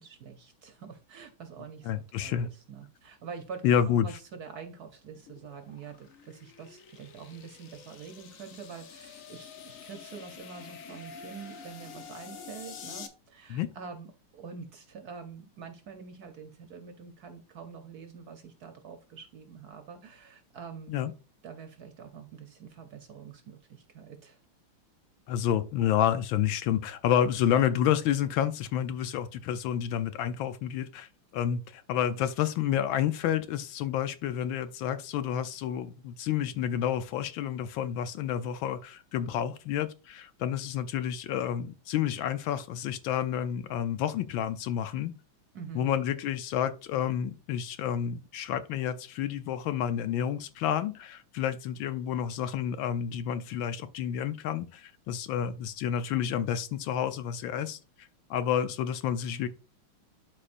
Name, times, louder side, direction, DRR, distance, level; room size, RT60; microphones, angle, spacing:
voice 1, 0.0-21.0 21.4-24.4 45.5-45.9, right 6 dB, 60° right, 1.1 m, -46 dB
voice 2, 1.9-2.5 3.6-4.1 13.5-13.7 20.9-21.1 25.3-45.1 45.7-57.8 58.3-59.5, left 9 dB, 75° left, 1.3 m, -29 dB
sound 1, 5.1-13.1, left 6 dB, 55° left, 0.9 m, -47 dB
12.0 x 4.4 x 2.5 m
omnidirectional pair, 2.3 m